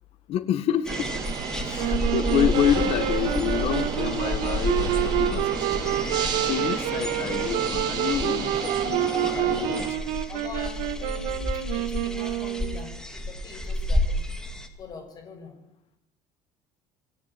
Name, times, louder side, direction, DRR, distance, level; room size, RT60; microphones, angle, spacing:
voice 1, 0.3-1.1 1.6-10.2, left 9 dB, 50° left, 12 dB, 1.6 m, -28 dB
sound 1, 0.9-14.7, left 1 dB, 5° left, 2.3 m, -31 dB
sound 2, 0.9-9.9, right 6 dB, 35° right, 4.6 m, -32 dB
Wind instrument woodwind instrument, 1.8-12.9, right 13 dB, 80° right, 2.9 m, -28 dB
voice 2, 10.3-14.2 14.8-15.5, left 4 dB, 30° left, 5 dB, 6.6 m, -43 dB
29.5 x 21.0 x 9.1 m, 0.82 s
cardioid pair, 175°, 13 cm